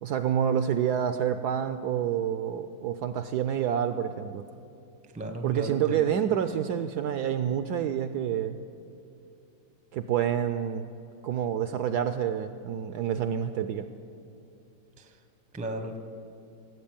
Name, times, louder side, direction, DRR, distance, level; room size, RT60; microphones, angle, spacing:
voice 1, 0.0-4.4 5.4-8.6 9.9-10.9 11.2-13.9, right 9 dB, 75° right, 10 dB, 1.0 m, -28 dB
voice 2, 5.1-6.1 15.0-15.1 15.5-16.0, right 1 dB, 10° right, 6 dB, 0.5 m, -35 dB
17.0 x 8.1 x 8.7 m, 2.7 s
omnidirectional pair, 2.1 m